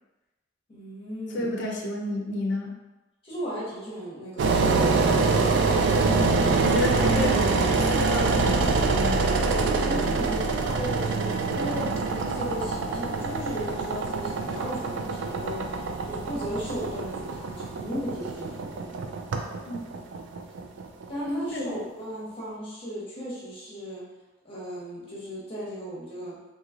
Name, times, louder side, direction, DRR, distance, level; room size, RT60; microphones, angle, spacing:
voice 1, 0.7-1.5 3.2-5.6 9.4-15.7 16.1-18.9 21.1-24.0 24.4-26.4, equal, 30° left, -7 dB, 1.0 m, -35 dB
voice 2, 1.3-2.8 6.0-9.2 19.7-19.8 21.5-21.7, left 2 dB, 65° left, -1 dB, 0.5 m, -31 dB
Engine, 4.4-21.3, right 3 dB, 70° right, 0.3 m, -25 dB
3.0 x 2.8 x 2.4 m, 1.0 s
head